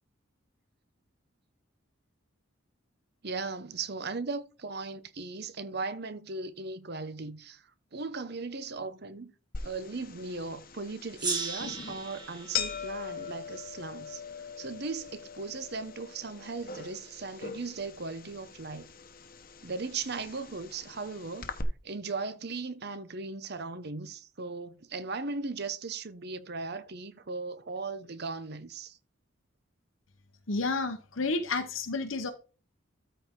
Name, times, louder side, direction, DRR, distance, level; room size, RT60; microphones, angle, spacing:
voice 1, 3.2-7.6 7.9-9.3 9.6-14.2 14.6-18.9 19.6-21.5 21.8-29.0, right 4 dB, 55° right, 0.9 m, -37 dB
sound 1, 9.5-21.6, left 6 dB, 45° left, 1.0 m, -42 dB
Gong, 11.2-14.3, right 4 dB, 20° right, 2.4 m, -38 dB
voice 2, 30.5-32.3, left 3 dB, 75° left, 1.0 m, -30 dB
13.0 x 4.4 x 3.7 m
head